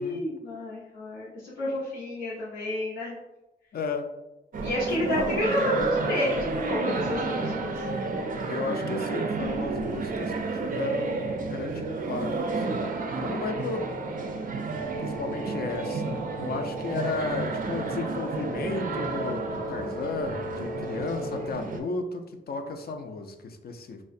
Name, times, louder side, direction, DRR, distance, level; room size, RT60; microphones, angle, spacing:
voice 1, 0.0-3.1 4.6-8.1, left 1 dB, 85° left, -8 dB, 0.7 m, -30 dB
voice 2, 3.7-4.1 5.1-5.7 8.5-10.3 10.6-12.8 13.2-13.9 15.0-24.0, left 4 dB, 50° left, 6 dB, 0.4 m, -34 dB
sound 1, 4.5-21.8, right 3 dB, 45° right, 0.4 m, -31 dB
sound 2, 14.7-21.5, right 1 dB, 10° left, 0.6 m, -38 dB
2.3 x 2.1 x 2.5 m, 0.98 s
cardioid pair, 50°, 20 cm